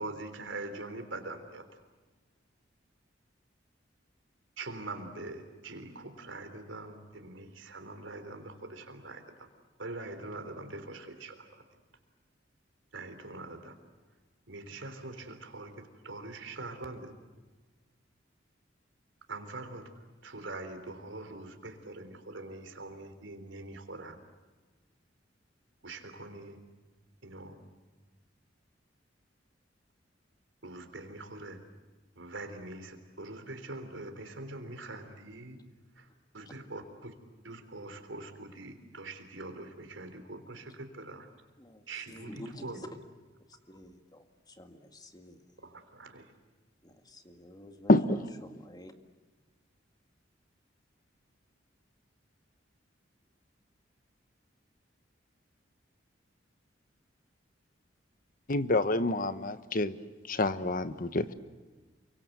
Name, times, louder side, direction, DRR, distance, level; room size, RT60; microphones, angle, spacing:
voice 1, 0.0-1.6 4.6-9.5 9.8-11.6 12.9-13.8 14.5-17.1 19.3-24.2 25.8-26.6 27.2-27.6 30.6-31.6 32.2-35.6 36.0-36.1 36.3-37.1 37.4-41.3 41.9-43.0 45.6-46.3, right 2 dB, 80° right, 7 dB, 3.7 m, -43 dB
voice 2, 41.6-42.9 43.7-45.4 46.8-48.2 48.4-48.9, left 1 dB, 20° left, 6 dB, 2.0 m, -49 dB
voice 3, 47.9-48.2 58.5-60.0 60.3-61.3, left 2 dB, 50° left, 12 dB, 1.2 m, -27 dB
28.5 x 24.5 x 8.2 m, 1.3 s
head